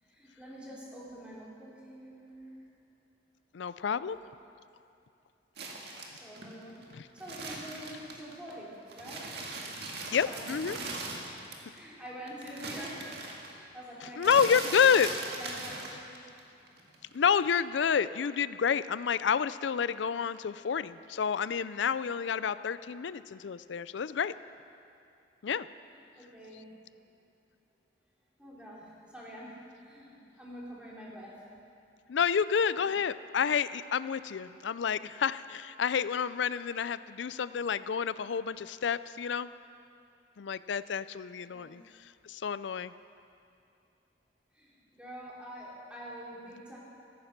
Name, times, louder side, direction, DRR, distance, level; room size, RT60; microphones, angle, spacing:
voice 1, 0.0-2.6 6.1-9.5 10.0-13.1 13.4-15.1 15.4-16.2 25.9-26.7 28.4-31.4 32.8-32.9 41.5-41.8 44.5-46.8, equal, 5° right, -6 dB, 3.4 m, -46 dB
voice 2, 3.5-4.2 6.9-7.0 10.1-10.8 14.0-15.1 17.1-24.3 25.4-25.7 32.1-39.5 40.4-42.9, left 7 dB, 70° left, 15 dB, 0.4 m, -29 dB
sound 1, 5.6-8.5 8.9-11.8 12.0-16.4 16.7-17.6, right 3 dB, 60° right, 1.9 m, -40 dB
15.0 x 14.5 x 5.9 m, 2.6 s
head